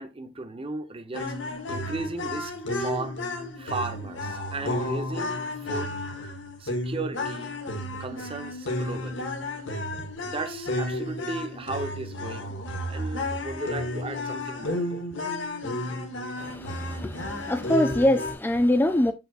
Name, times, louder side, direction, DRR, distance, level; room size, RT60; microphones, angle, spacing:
voice 1, 0.0-1.3 1.7-3.2 3.6-6.0 6.6-7.6 8.0-9.3 10.2-12.5 12.9-15.0, right 2 dB, 30° right, 0.8 m, -35 dB
sound 1, 1.1-18.3, left 1 dB, 75° left, 1.5 m, -32 dB
voice 2, 16.4-19.1, left 1 dB, 10° left, 0.4 m, -24 dB
7.4 x 5.7 x 2.4 m
head